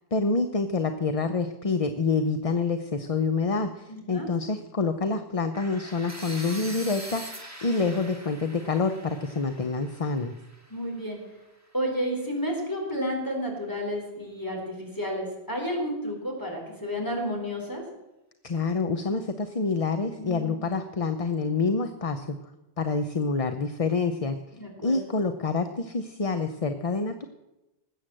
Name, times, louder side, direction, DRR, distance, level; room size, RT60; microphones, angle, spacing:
voice 1, 0.1-7.3 7.6-10.3 18.4-22.4 22.8-24.4 24.8-27.2, left 4 dB, 35° left, 8 dB, 0.8 m, -27 dB
voice 2, 3.9-4.3 10.7-11.2 11.7-17.8 20.2-20.6 24.6-25.0, equal, 15° left, 0 dB, 4.2 m, -31 dB
sound 1, 5.5-11.5, right 1 dB, 15° right, 1.9 m, -43 dB
19.5 x 8.2 x 7.6 m, 0.97 s
omnidirectional pair, 1.1 m